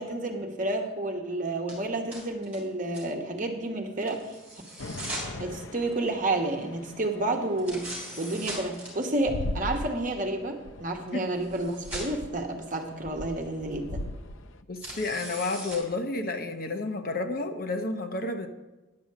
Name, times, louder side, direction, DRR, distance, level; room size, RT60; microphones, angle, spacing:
voice 1, 0.0-4.2 5.4-7.9 8.2-14.0, right 2 dB, 40° right, 2 dB, 1.2 m, -30 dB
sound 1, 1.7-1.8 2.1-2.6 2.9-3.0 4.0-5.3 7.6-8.9 11.1-11.2 11.4-12.1 14.8-15.8, right 1 dB, 10° right, 3.7 m, -39 dB
sound 2, 4.8-14.6, left 2 dB, 80° left, 0.6 m, -40 dB
voice 2, 14.7-18.5, left 3 dB, 45° left, 6 dB, 0.8 m, -31 dB
10.5 x 6.2 x 7.3 m, 1.1 s
head